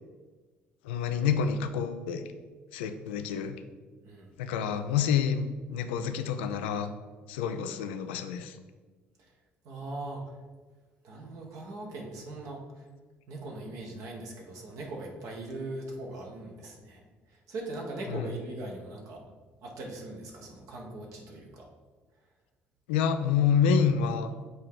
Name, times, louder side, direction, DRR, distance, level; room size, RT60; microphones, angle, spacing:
voice 1, 0.8-2.2 2.7-3.6 4.4-6.9 7.3-8.6 18.1-18.3 22.9-24.3, left 7 dB, 80° left, 9 dB, 0.4 m, -28 dB
voice 2, 9.6-10.2 11.0-12.9 13.3-19.2 19.6-21.7, right 2 dB, 65° right, 0 dB, 1.3 m, -40 dB
8.0 x 3.1 x 3.9 m, 1.3 s
hypercardioid pair, 50°, 6 cm